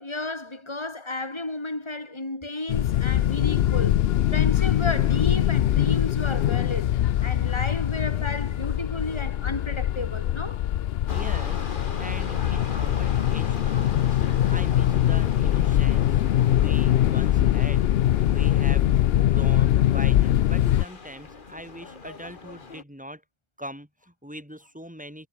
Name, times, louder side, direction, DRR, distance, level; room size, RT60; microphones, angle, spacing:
voice 1, 0.0-6.9 7.2-10.6, left 2 dB, 25° left, 3.1 m, -33 dB
sound 1, 2.7-20.8, left 12 dB, 75° left, 0.8 m, -22 dB
sound 2, 11.1-22.8, left 4 dB, 50° left, 1.8 m, -38 dB
voice 2, 11.1-17.9 18.2-23.2 23.6-25.3, equal, 5° right, 6.7 m, -41 dB
omnidirectional pair, 1.1 m